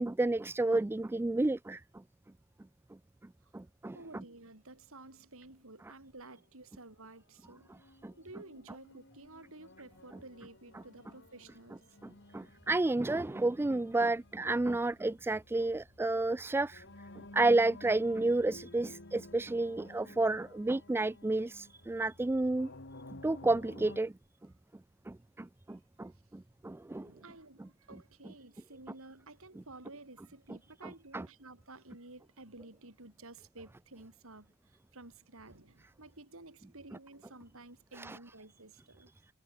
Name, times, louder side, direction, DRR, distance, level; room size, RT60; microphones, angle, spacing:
voice 1, 0.0-1.8 3.5-4.0 8.0-8.1 12.3-16.8 17.3-22.7 23.2-24.1 25.1-27.1 31.1-31.3 38.0-38.2, right 2 dB, 10° right, 0.3 m, -31 dB
voice 2, 3.9-7.7 8.2-12.0 25.7-26.2 27.0-39.1, right 2 dB, 70° right, 4.7 m, -53 dB
sound 1, 7.5-24.0, left 2 dB, 55° left, 2.7 m, -54 dB
head